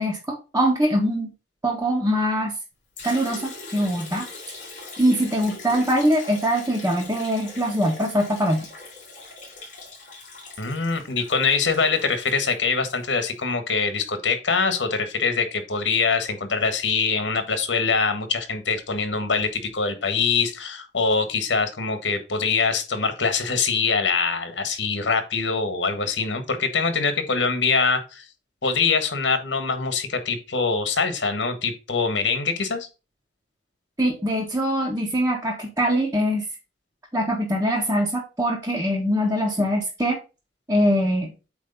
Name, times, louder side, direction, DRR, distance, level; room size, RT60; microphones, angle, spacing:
voice 1, 0.0-1.3 1.6-2.5 3.0-4.3 5.0-8.7 34.0-36.5 37.1-40.2 40.7-41.3, equal, 15° right, 1.5 m, -23 dB
Liquid, 3.0-13.1, left 3 dB, 45° left, 3.5 m, -41 dB
voice 2, 10.6-28.3 28.6-32.9, left 4 dB, 85° left, 1.5 m, -24 dB
8.4 x 3.1 x 5.3 m
head